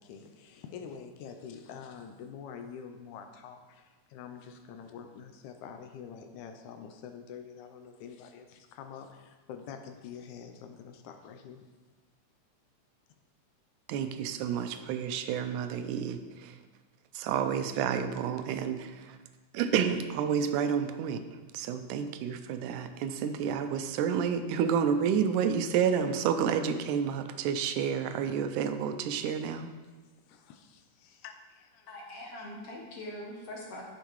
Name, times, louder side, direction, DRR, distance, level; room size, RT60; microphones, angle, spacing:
voice 1, 0.0-11.6 29.4-29.5 30.3-31.9, left 7 dB, 80° left, 6 dB, 2.0 m, -46 dB
voice 2, 13.9-16.5 17.1-19.2 19.5-21.2 21.5-29.7, right 7 dB, 85° right, 9 dB, 2.0 m, -30 dB
voice 3, 31.9-33.8, left 1 dB, 65° left, -1 dB, 1.6 m, -42 dB
10.5 x 6.4 x 3.1 m, 1.3 s
omnidirectional pair, 3.5 m